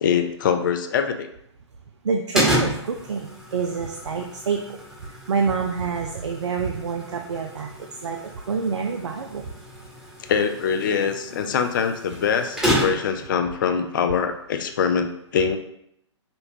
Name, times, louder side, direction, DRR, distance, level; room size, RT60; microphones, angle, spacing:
voice 1, 0.0-1.3 10.3-15.6, left 7 dB, 45° left, 7 dB, 0.4 m, -23 dB
voice 2, 2.0-9.5, right 5 dB, 70° right, 3 dB, 0.4 m, -27 dB
sound 1, 2.3-13.2, equal, 5° right, 1.0 m, -30 dB
5.3 x 2.2 x 2.7 m, 0.76 s
figure-of-eight pair, 125°, 15 cm